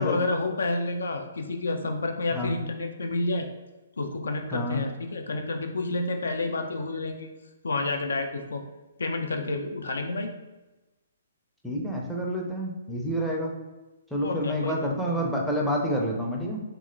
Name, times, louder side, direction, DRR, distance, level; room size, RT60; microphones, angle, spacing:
voice 1, 0.0-3.5 4.0-7.3 7.6-8.6 9.0-10.3 14.2-14.9, left 2 dB, 70° left, 4 dB, 0.3 m, -29 dB
voice 2, 11.6-13.5 14.1-16.6, equal, ahead, -3 dB, 0.4 m, -28 dB
2.8 x 2.8 x 2.5 m, 1.1 s
figure-of-eight pair, 125°, 0 cm